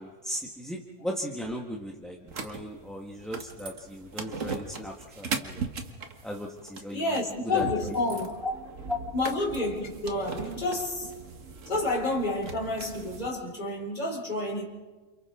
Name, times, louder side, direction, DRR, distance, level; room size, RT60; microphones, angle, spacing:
voice 1, 0.0-5.7 6.2-7.2 7.4-8.0 8.4-8.5 8.9-9.0, equal, ahead, 1.3 m, -36 dB
sound 1, 2.3-13.3, right 5 dB, 60° right, 1.7 m, -39 dB
voice 2, 6.9-8.4 9.1-11.1 11.7-14.7, left 2 dB, 30° left, 3.7 m, -29 dB
30.0 x 28.0 x 3.7 m
omnidirectional pair, 1.5 m